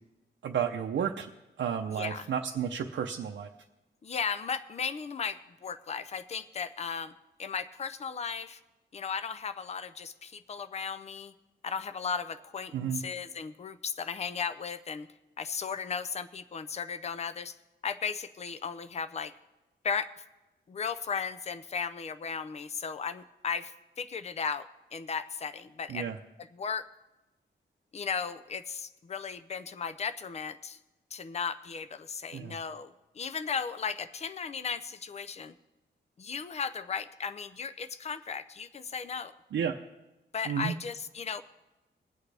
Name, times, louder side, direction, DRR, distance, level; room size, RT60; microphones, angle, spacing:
voice 1, 0.4-1.3 1.6-3.5 12.7-13.0 25.9-26.2 32.3-32.6 39.5-39.8 40.5-40.7, right 8 dB, 85° right, 2 dB, 0.7 m, -32 dB
voice 2, 1.9-2.3 4.0-7.1 7.4-8.6 8.9-11.3 11.6-15.1 15.4-17.6 17.8-19.3 19.8-20.1 20.7-26.1 26.4-26.9 27.9-30.8 31.1-35.6 36.2-39.3 40.3-41.4, left 6 dB, 35° left, 12 dB, 0.5 m, -36 dB
21.0 x 8.3 x 3.4 m, 1.0 s
wide cardioid pair, 175°, 19 cm